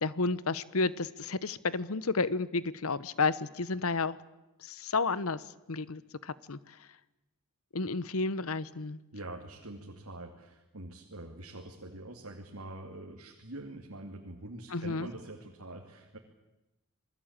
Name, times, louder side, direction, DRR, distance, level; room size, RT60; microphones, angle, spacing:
voice 1, 0.0-4.2 4.6-6.9 7.7-9.0 14.7-15.1, left 3 dB, 75° left, 18 dB, 1.0 m, -32 dB
voice 2, 9.1-16.2, right 2 dB, 75° right, 1 dB, 2.7 m, -45 dB
28.0 x 20.0 x 8.9 m, 1.0 s
head